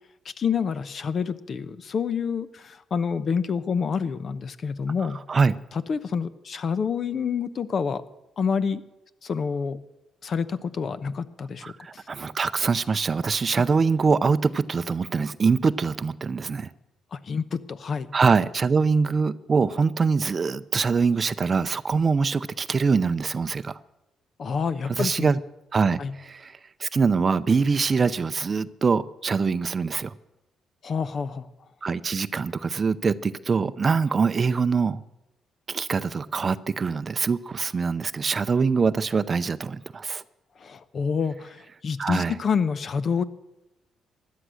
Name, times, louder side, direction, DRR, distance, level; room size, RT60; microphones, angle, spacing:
voice 1, 0.2-5.2 5.7-8.0 8.4-8.8 9.2-9.8 10.2-12.0 17.1-18.1 24.4-25.3 26.0-26.1 30.8-31.5 40.6-43.2, left 6 dB, 50° left, 14 dB, 0.9 m, -28 dB
voice 2, 11.6-16.7 18.1-23.8 25.0-25.4 25.7-30.1 31.8-35.0 35.7-40.2 42.0-42.3, right 5 dB, 35° right, 15 dB, 0.6 m, -24 dB
16.0 x 11.5 x 6.4 m, 0.95 s
cardioid pair, 90°, 0 cm